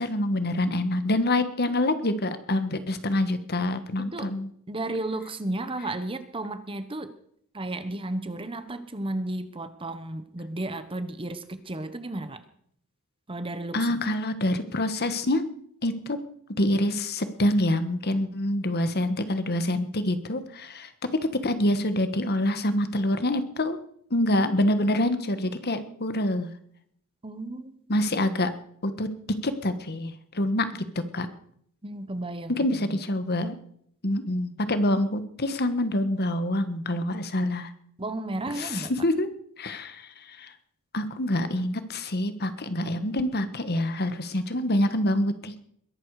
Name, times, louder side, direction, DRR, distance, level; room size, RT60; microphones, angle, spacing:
voice 1, 0.0-4.5 13.7-15.4 15.8-16.2 16.6-23.8 24.1-26.5 27.9-28.5 28.8-29.1 29.4-31.3 32.5-33.6 34.0-37.7 38.5-39.3 39.6-40.5 40.9-45.6, left 1 dB, 45° left, 11 dB, 1.4 m, -26 dB
voice 2, 4.0-4.3 4.7-7.1 7.5-12.4 13.3-13.9 27.2-27.7 31.8-32.6 32.9-33.0 38.0-38.9, right 2 dB, 25° right, 11 dB, 1.1 m, -33 dB
21.5 x 11.5 x 4.9 m, 0.66 s
head